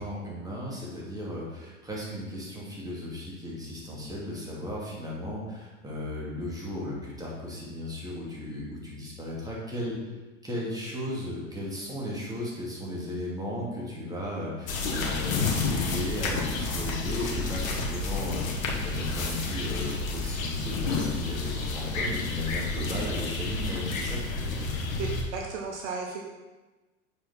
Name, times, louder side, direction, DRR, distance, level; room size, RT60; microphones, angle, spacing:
voice 1, 0.0-10.0 10.4-24.7, left 1 dB, 10° right, -5 dB, 2.4 m, -36 dB
sound 1, 14.7-25.2, left 3 dB, 85° left, 1.4 m, -30 dB
voice 2, 25.0-26.2, right 4 dB, 60° right, 1 dB, 1.1 m, -34 dB
7.2 x 4.8 x 4.4 m, 1.2 s
hypercardioid pair, 100°, 39 cm